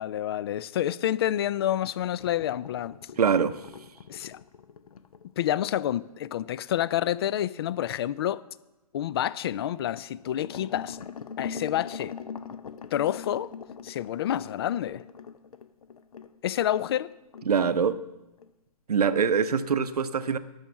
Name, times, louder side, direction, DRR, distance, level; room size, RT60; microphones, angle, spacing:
voice 1, 0.0-3.0 4.1-4.4 5.4-8.4 8.9-11.0 11.4-12.2 12.9-13.5 13.8-15.0 16.4-17.1, left 11 dB, 40° left, 0.4 m, -28 dB
sound 1, 2.1-6.8 10.2-17.0 17.3-17.5 17.8-18.0 18.4-18.5, left 6 dB, 65° left, 0.8 m, -42 dB
voice 2, 3.2-3.6 17.5-18.0 18.9-20.4, right 6 dB, 75° right, 0.8 m, -24 dB
12.0 x 6.4 x 7.1 m
figure-of-eight pair, 135°, 20 cm